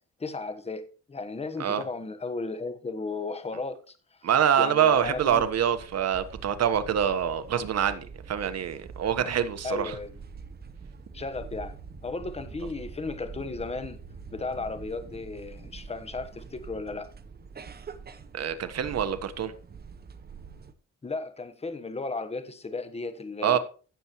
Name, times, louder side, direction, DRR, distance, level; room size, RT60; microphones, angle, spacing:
voice 1, 0.2-3.9 4.6-5.5 9.6-10.1 11.1-11.7 12.0-14.0 14.3-17.1 21.0-23.6, left 3 dB, 20° left, 1.2 m, -35 dB
voice 2, 4.2-10.0 18.3-19.5 23.4-23.6, right 8 dB, 60° right, 1.3 m, -25 dB
sound 1, 4.9-20.7, right 5 dB, 30° right, 1.0 m, -45 dB
16.0 x 7.0 x 3.1 m
cardioid pair, 90°, 30 cm